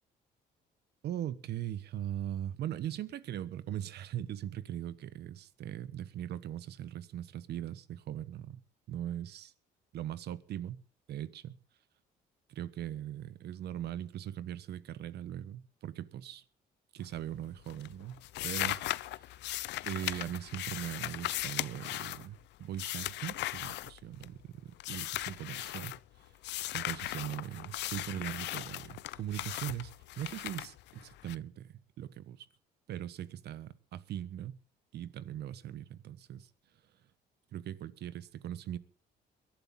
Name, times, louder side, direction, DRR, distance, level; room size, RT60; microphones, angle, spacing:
voice 1, 1.0-8.6 8.9-9.5 9.9-10.8 11.1-11.6 12.5-16.4 16.9-19.3 19.9-26.0 26.7-32.5 32.9-34.6 34.9-36.5 37.5-38.8, right 11 dB, 70° right, 1.3 m, -40 dB
sound 1, 17.0-17.4 17.7-24.4 24.8-26.0 26.4-31.3, left 16 dB, 75° left, 0.6 m, -38 dB
22.0 x 12.0 x 3.9 m
cardioid pair, 100°, 18 cm